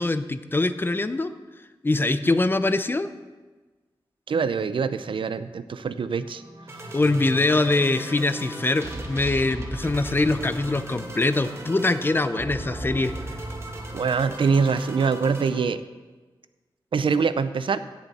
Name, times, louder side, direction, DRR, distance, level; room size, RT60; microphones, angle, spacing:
voice 1, 0.0-1.3 1.8-3.1 6.9-13.1, left 2 dB, 25° left, 12 dB, 0.5 m, -23 dB
voice 2, 4.3-6.4 6.7-6.8 13.9-15.8 16.9-17.8, right 5 dB, 75° right, 13 dB, 0.5 m, -24 dB
sound 1, 6.3-15.6, right 1 dB, 30° right, 1.5 m, -36 dB
16.0 x 7.4 x 4.2 m, 1.3 s
wide cardioid pair, 110°, 9 cm